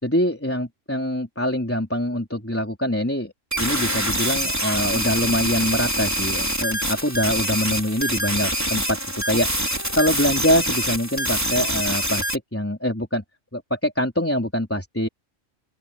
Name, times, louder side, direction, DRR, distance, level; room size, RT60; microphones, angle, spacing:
voice 1, 0.0-12.3 12.5-13.2 13.5-15.1, equal, 10° left, 3.8 m, -24 dB
sound 1, 3.5-12.4, right 1 dB, 10° right, 3.7 m, -25 dB
open air
omnidirectional pair, 1.3 m